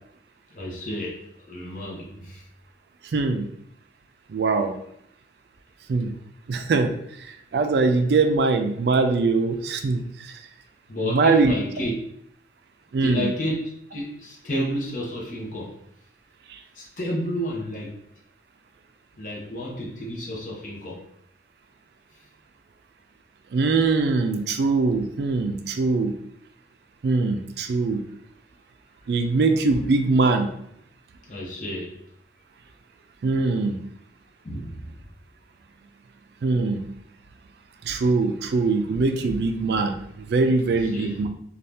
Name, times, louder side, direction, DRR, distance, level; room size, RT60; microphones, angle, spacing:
voice 1, 0.5-2.4 10.9-11.9 13.0-15.8 16.7-18.0 19.2-21.0 31.3-32.0 34.4-35.0 40.7-41.2, equal, 45° left, -3 dB, 0.8 m, -31 dB
voice 2, 3.1-3.5 4.3-4.7 5.9-6.1 6.5-6.9 7.2-10.4 11.1-11.5 12.9-13.3 16.5-16.6 23.5-26.1 27.0-28.0 29.1-30.5 33.2-33.8 36.4-36.8 37.8-41.3, right 3 dB, 65° right, 6 dB, 0.4 m, -22 dB
2.7 x 2.3 x 3.3 m, 0.74 s
head